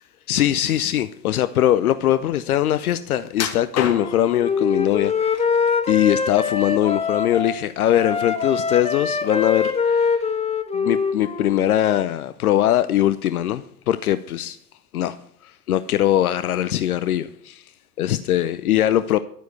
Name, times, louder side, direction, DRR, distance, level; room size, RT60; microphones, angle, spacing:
voice 1, 0.3-5.4 5.9-10.3 10.7-14.6 14.9-17.7 18.0-19.2, left 12 dB, 65° left, 0.8 m, -21 dB
sound 1, 3.3-4.4 5.0-5.7 6.1-7.0 7.4-7.6 8.1-8.2, left 7 dB, 35° left, 2.4 m, -30 dB
Wind instrument woodwind instrument, 3.9-7.6 7.9-11.5, left 5 dB, 15° left, 1.6 m, -23 dB
11.5 x 9.3 x 7.8 m
figure-of-eight pair, 85°, 46 cm